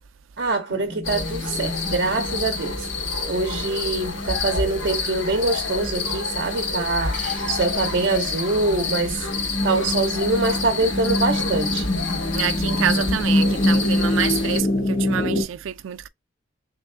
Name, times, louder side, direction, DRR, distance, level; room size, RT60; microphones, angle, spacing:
voice 1, 0.4-2.9 3.3-9.3 9.6-11.9, right 3 dB, 55° right, 0.7 m, -24 dB
sound 1, 0.7-15.4, left 1 dB, 45° left, 1.2 m, -27 dB
sound 2, 1.0-14.6, left 4 dB, 85° left, 1.4 m, -28 dB
Hiss, 7.1-9.2, right 1 dB, 5° left, 2.2 m, -43 dB
voice 2, 12.3-16.1, right 10 dB, 90° right, 0.4 m, -27 dB
3.4 x 3.3 x 3.2 m
head